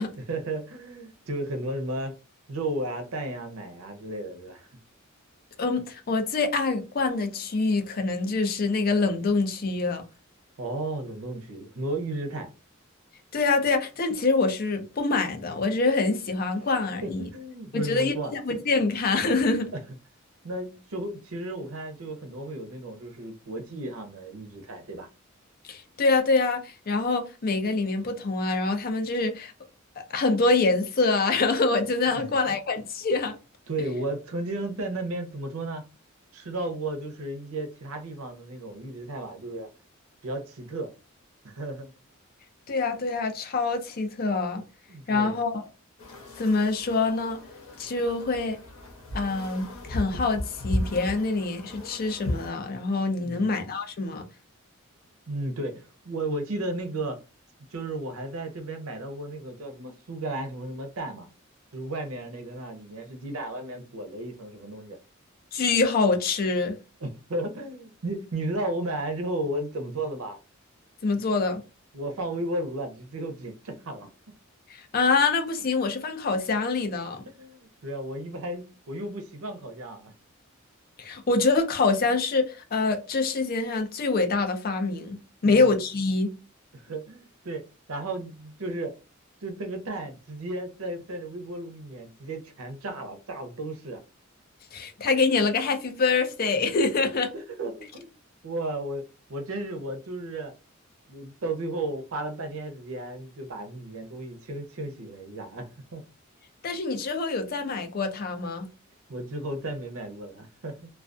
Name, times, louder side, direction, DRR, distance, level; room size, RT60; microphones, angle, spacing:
voice 1, 0.3-2.2 2.5-4.7 10.6-12.5 17.0-18.3 20.4-25.1 32.1-32.4 33.7-35.8 36.3-39.7 40.2-40.9 41.4-41.9 44.9-45.4 53.2-53.6 55.3-57.2 57.7-61.3 61.7-65.0 67.0-70.4 71.9-74.1 77.3-80.1 85.4-85.6 86.7-89.0 89.4-94.0 97.3-98.2 98.4-99.0 99.3-100.5 101.1-106.0 109.1-110.9, right 2 dB, 85° right, 0.6 m, -34 dB
voice 2, 5.6-10.0 13.3-17.3 17.7-19.7 25.6-29.5 30.0-33.4 42.7-44.6 45.1-45.7 46.4-47.4 47.8-48.6 49.1-54.2 65.5-66.8 71.0-71.6 74.7-77.2 81.0-86.3 94.7-97.3 106.6-108.7, left 3 dB, 45° left, 0.5 m, -25 dB
sound 1, 46.0-52.5, left 1 dB, 80° left, 0.8 m, -35 dB
2.3 x 2.2 x 2.5 m
head